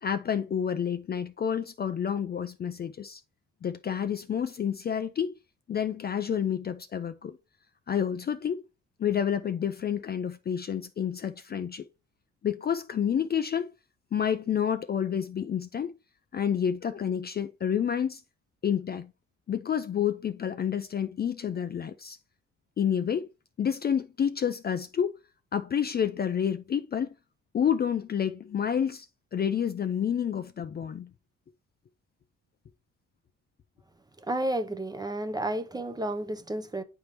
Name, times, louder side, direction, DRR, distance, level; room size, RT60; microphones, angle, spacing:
voice 1, 0.0-3.2 3.6-5.3 5.7-7.4 7.9-8.6 9.0-11.8 12.4-13.7 14.1-15.9 16.3-18.2 18.6-19.1 19.5-22.2 22.8-23.3 23.6-25.2 25.5-27.1 27.5-29.1 29.3-31.1, left 8 dB, 35° left, 0.4 m, -29 dB
voice 2, 34.2-36.8, right 1 dB, 15° right, 0.6 m, -31 dB
9.4 x 3.5 x 2.9 m
cardioid pair, 90°, 30 cm